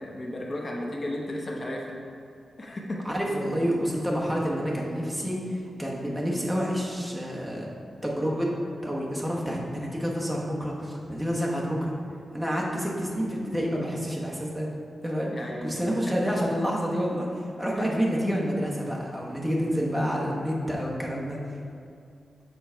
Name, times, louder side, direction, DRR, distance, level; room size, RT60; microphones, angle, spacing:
voice 1, 0.0-2.0 2.6-3.1 15.3-16.4 17.8-17.9, left 1 dB, 30° left, -2 dB, 0.8 m, -34 dB
voice 2, 3.0-7.7 8.0-8.5 8.8-11.9 12.3-14.7 15.0-15.3 15.6-17.3 17.6-21.4, equal, 5° right, -3 dB, 1.1 m, -28 dB
7.1 x 4.0 x 4.5 m, 2.5 s
wide cardioid pair, 120°, 0 cm